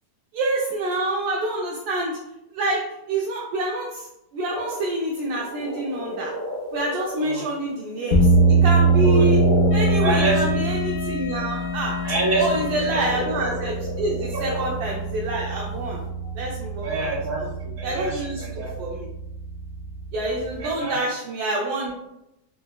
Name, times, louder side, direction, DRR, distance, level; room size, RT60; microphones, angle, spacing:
voice 1, 0.3-2.2 2.5-4.1 4.3-6.3 6.7-9.4 9.7-12.0 12.3-16.0 16.4-16.9 17.4-17.5 17.8-19.1 20.1-21.9, right 2 dB, 80° right, -3 dB, 1.1 m, -27 dB
sound 1, 4.5-10.8 12.0-16.1, left 1 dB, 25° left, 0.3 m, -32 dB
voice 2, 7.2-7.5 9.0-9.6 10.0-10.6 12.0-13.1 14.3-14.4 16.2-16.3 16.8-18.7 20.6-21.0, right 2 dB, 50° right, -6 dB, 2.1 m, -27 dB
sound 2, 8.1-20.6, right 2 dB, 80° left, 1.2 m, -23 dB
Wind instrument woodwind instrument, 9.7-13.6, right 3 dB, 45° left, 0.9 m, -36 dB
3.9 x 3.1 x 2.2 m, 0.86 s
omnidirectional pair, 1.7 m